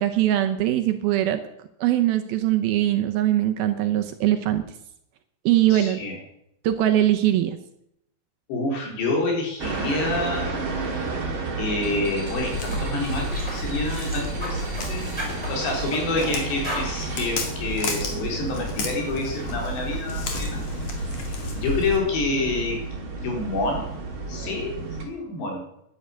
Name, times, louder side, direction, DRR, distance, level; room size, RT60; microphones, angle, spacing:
voice 1, 0.0-1.4 1.8-4.6 5.5-6.0 6.6-7.6, right 13 dB, 75° right, 7 dB, 2.4 m, -21 dB
voice 2, 5.7-6.2 8.5-10.5 11.6-20.6 21.0-21.1 21.5-22.8 23.2-23.9 24.3-25.6, left 2 dB, 80° left, 1 dB, 6.0 m, -28 dB
sound 1, 9.6-25.0, right 4 dB, 35° right, 2.7 m, -32 dB
sound 2, 12.1-12.3 12.7-12.8 13.3-13.6 14.0-14.9 15.2-16.3 16.6-16.9, equal, ahead, 5.6 m, -34 dB
Walk footsteps, 12.4-22.0, left 3 dB, 45° left, 2.9 m, -33 dB
11.0 x 11.0 x 8.7 m, 0.78 s
omnidirectional pair, 5.0 m